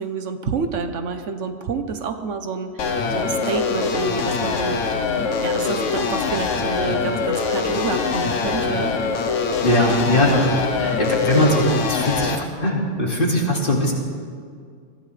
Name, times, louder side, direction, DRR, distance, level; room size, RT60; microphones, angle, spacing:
voice 1, 0.0-4.8 5.4-8.9 9.8-10.4 11.3-11.5, right 5 dB, 75° right, 7 dB, 1.2 m, -28 dB
sound 1, 2.8-12.4, left 5 dB, 85° left, 1.3 m, -23 dB
voice 2, 9.6-10.5 10.8-13.9, left 1 dB, 45° left, -2 dB, 2.5 m, -20 dB
21.5 x 16.0 x 3.3 m, 2.1 s
omnidirectional pair, 1.3 m